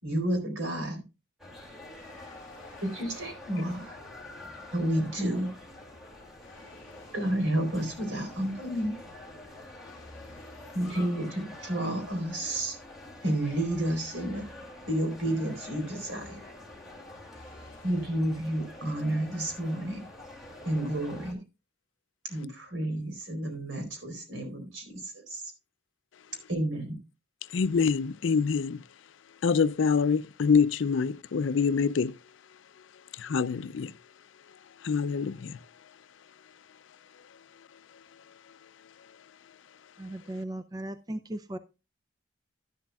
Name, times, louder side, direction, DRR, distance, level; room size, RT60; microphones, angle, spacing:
voice 1, 0.0-1.0 2.8-4.0 4.7-5.5 7.1-9.0 10.7-12.8 13.2-14.4 14.9-16.4 17.8-20.0 20.6-21.4 22.3-25.5 26.5-26.9, right 1 dB, 75° right, 4.1 m, -30 dB
sound 1, 1.4-21.3, left 2 dB, ahead, 2.4 m, -47 dB
voice 2, 27.5-28.8 29.4-32.1 33.1-33.9 34.8-35.6, left 5 dB, 70° left, 0.4 m, -25 dB
voice 3, 40.0-41.6, right 1 dB, 20° right, 0.4 m, -37 dB
11.5 x 11.5 x 2.3 m
head